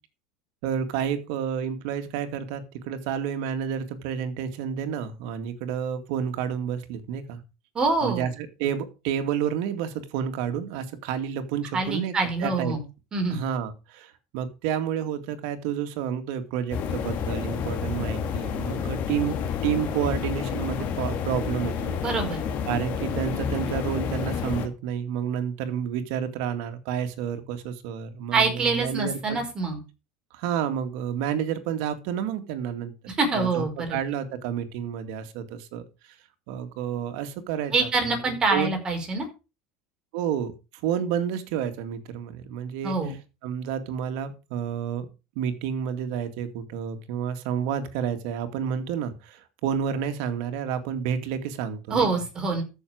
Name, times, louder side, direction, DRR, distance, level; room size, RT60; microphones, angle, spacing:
voice 1, 0.6-7.4 8.0-12.1 12.4-12.7 13.3-19.4 19.6-22.0 22.7-29.4 30.3-32.9 33.3-33.6 33.9-36.2 36.5-38.2 38.5-38.7 40.1-40.5 40.8-43.0 43.4-45.1 45.4-52.1, right 8 dB, 70° right, 9 dB, 2.2 m, -30 dB
voice 2, 7.7-8.3 11.7-12.8 13.1-13.4 22.0-22.4 28.3-29.8 33.1-34.0 37.7-39.3 42.8-43.1 51.9-52.6, right 3 dB, 25° right, 3 dB, 4.9 m, -25 dB
sound 1, 16.7-24.7, left 7 dB, 45° left, 2.2 m, -29 dB
14.0 x 6.6 x 5.0 m, 0.30 s
supercardioid pair, 120°, 3 cm